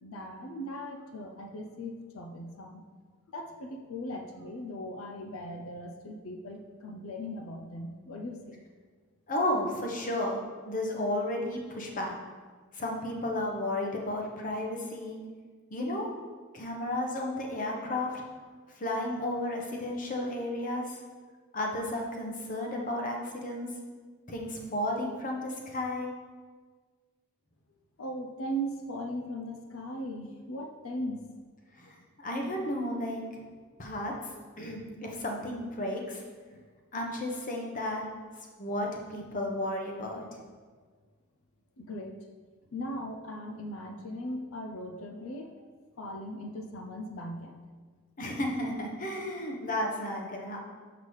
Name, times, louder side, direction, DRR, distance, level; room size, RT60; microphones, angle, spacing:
voice 1, 0.0-2.8 3.3-8.6 28.0-31.2 36.5-36.6 41.8-42.2 42.7-45.5 46.0-47.6, equal, 65° left, 3 dB, 0.5 m, -38 dB
voice 2, 9.3-12.2 12.7-15.2 15.7-16.1 16.5-18.2 18.8-21.0 21.5-23.7 24.3-26.1 31.8-33.2 33.8-34.1 34.6-36.2 36.9-38.0 38.6-40.4 48.2-50.6, left 1 dB, 40° left, 0 dB, 1.0 m, -33 dB
7.3 x 5.9 x 3.2 m, 1.5 s
head